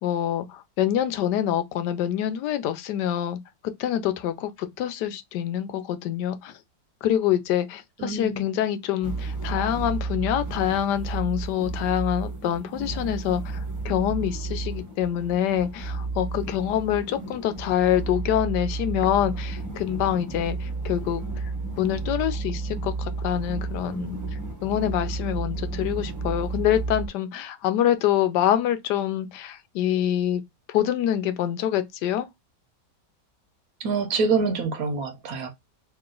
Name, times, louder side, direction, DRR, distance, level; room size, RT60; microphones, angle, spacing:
voice 1, 0.0-3.4 3.8-6.5 7.0-21.2 21.8-24.2 24.6-30.4 30.7-32.3, left 11 dB, 75° left, 1.2 m, -26 dB
voice 2, 8.0-8.5 33.8-35.5, right 4 dB, 60° right, 1.2 m, -26 dB
sound 1, 9.0-27.1, right 3 dB, 15° right, 0.8 m, -32 dB
3.0 x 2.9 x 3.7 m
omnidirectional pair, 1.9 m